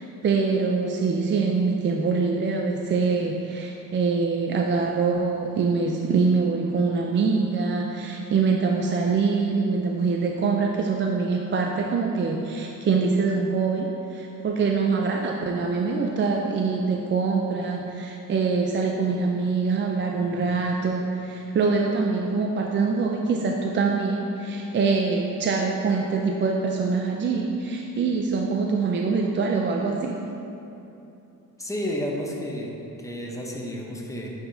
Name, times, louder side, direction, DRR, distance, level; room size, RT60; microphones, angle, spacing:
voice 1, 0.0-30.2, right 4 dB, 35° right, 0 dB, 0.4 m, -24 dB
voice 2, 31.6-34.3, equal, 10° left, -1 dB, 0.7 m, -31 dB
9.1 x 4.8 x 2.7 m, 2.9 s
cardioid pair, 120°, 35 cm